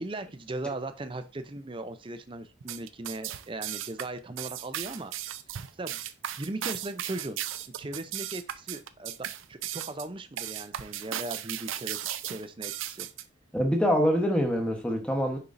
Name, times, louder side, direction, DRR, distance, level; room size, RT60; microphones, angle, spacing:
voice 1, 0.0-5.1 5.7-6.0 6.4-7.4 7.8-12.0 12.2-13.1, right 2 dB, 25° right, 0.5 m, -38 dB
sound 1, 2.6-13.2, right 11 dB, 75° right, 0.5 m, -36 dB
voice 2, 13.5-15.4, equal, 5° left, 1.0 m, -25 dB
6.9 x 5.3 x 2.6 m
head